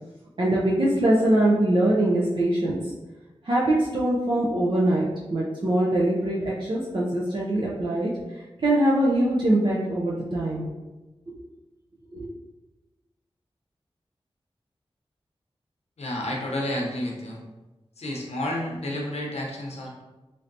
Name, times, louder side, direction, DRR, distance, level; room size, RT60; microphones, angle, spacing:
voice 1, 0.4-2.8 3.4-8.1 8.6-10.7 11.3-11.4 12.1-12.3, right 1 dB, 50° right, -6 dB, 0.5 m, -23 dB
voice 2, 16.0-17.4 18.0-20.0, left 1 dB, 85° left, -2 dB, 0.7 m, -30 dB
3.2 x 2.7 x 2.6 m, 1.1 s
wide cardioid pair, 70°, 11 cm